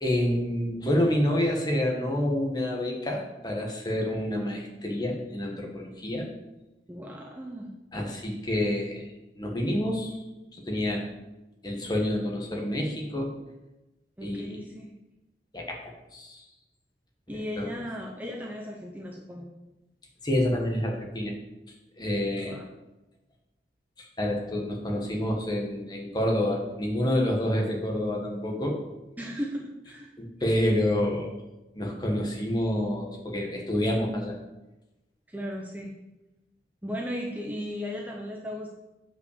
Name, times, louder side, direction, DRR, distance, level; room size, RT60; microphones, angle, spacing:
voice 1, 0.0-6.3 7.9-9.0 9.4-10.2 10.5-11.1 11.6-13.3 14.2-14.6 15.5-15.8 16.1-16.4 17.6-17.7 20.2-21.3 22.0-22.6 24.0-28.8 30.2-31.4 31.7-34.3, left 1 dB, 25° left, 0 dB, 1.6 m, -28 dB
voice 2, 6.9-7.7 14.2-14.9 17.3-19.5 22.1-22.7 29.2-30.1 35.3-35.9 36.8-38.7, equal, 10° right, 0 dB, 0.9 m, -36 dB
7.6 x 5.7 x 6.8 m, 1.0 s
head